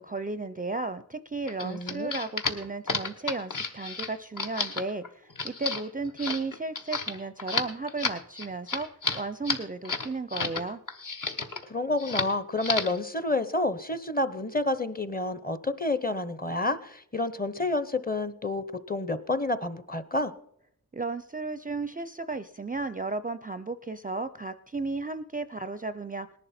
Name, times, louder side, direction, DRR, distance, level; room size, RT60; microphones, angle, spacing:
voice 1, 0.0-8.9 9.1-10.8 20.9-26.3, right 3 dB, 25° right, 13 dB, 0.4 m, -34 dB
sound 1, 1.5-10.6 10.9-11.6 12.0-12.3 12.6-13.0, left 4 dB, 60° left, 1.2 m, -32 dB
voice 2, 1.6-2.1 11.7-20.3, left 2 dB, 25° left, 13 dB, 0.8 m, -29 dB
19.0 x 11.0 x 4.3 m, 0.72 s
wide cardioid pair, 85°, 36 cm